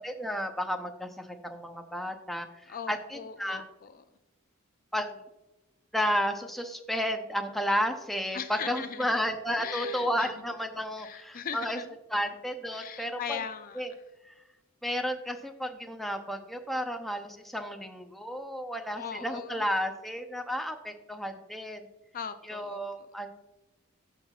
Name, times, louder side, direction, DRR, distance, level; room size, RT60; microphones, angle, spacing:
voice 1, 0.0-3.6 4.9-5.2 5.9-11.8 12.1-13.4 13.8-13.9 14.2-14.3 14.8-21.8 22.5-23.3, equal, ahead, 4 dB, 0.6 m, -32 dB
voice 2, 2.7-4.0 8.3-9.3 9.6-10.4 11.0-12.3 12.7-13.8 19.0-19.7 22.1-22.8, left 7 dB, 45° left, 9 dB, 0.4 m, -39 dB
14.5 x 5.8 x 2.3 m, 1.0 s
head